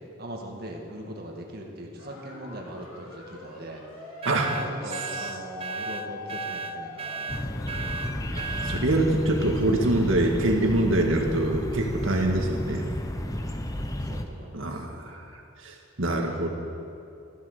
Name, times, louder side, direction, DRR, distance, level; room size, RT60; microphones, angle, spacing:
voice 1, 0.2-3.8 4.3-7.4 13.4-13.6 14.0-14.7, right 1 dB, 50° right, 0 dB, 2.0 m, -40 dB
sound 1, 2.0-9.2, left 2 dB, 85° left, 2.7 m, -42 dB
sound 2, 4.2-8.9, right 4 dB, 30° right, 0.5 m, -35 dB
sound 3, 7.3-14.2, left 1 dB, 15° left, 0.8 m, -32 dB
voice 2, 8.3-12.8 14.5-16.5, right 1 dB, 70° right, 2 dB, 1.9 m, -25 dB
14.0 x 13.0 x 6.7 m, 2.6 s
head